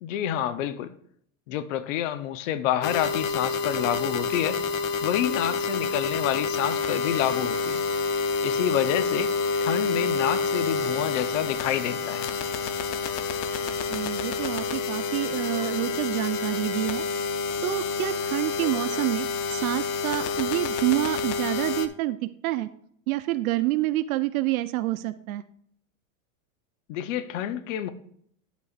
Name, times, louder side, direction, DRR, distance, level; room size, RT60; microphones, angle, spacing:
voice 1, 0.0-0.9 1.5-4.6 5.0-7.8 8.4-9.3 9.6-12.3 26.9-27.9, left 11 dB, 65° left, 12 dB, 0.8 m, -28 dB
sound 1, 2.8-21.9, left 4 dB, 40° left, 0.6 m, -28 dB
voice 2, 13.9-17.0 17.6-22.2 22.4-22.7 23.1-25.4, right 16 dB, 90° right, 10 dB, 0.6 m, -28 dB
sound 2, 14.0-14.1 14.7-14.8 15.4-16.0 17.1-17.2 17.8-18.0 18.6-19.1, left 5 dB, 80° left, 1.8 m, -45 dB
9.7 x 8.2 x 2.5 m, 0.66 s
supercardioid pair, 150°, 41 cm